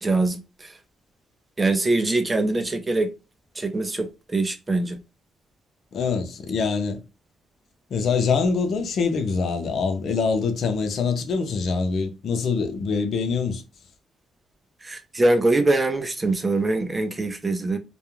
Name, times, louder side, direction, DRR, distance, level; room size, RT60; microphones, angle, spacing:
voice 1, 0.0-0.7 1.6-3.1 3.6-5.0 14.8-17.8, right 2 dB, 20° right, 0.5 m, -23 dB
voice 2, 5.9-7.0 7.9-13.6, left 5 dB, 60° left, 0.5 m, -24 dB
2.4 x 2.1 x 3.0 m
cardioid pair, 90°, 0 cm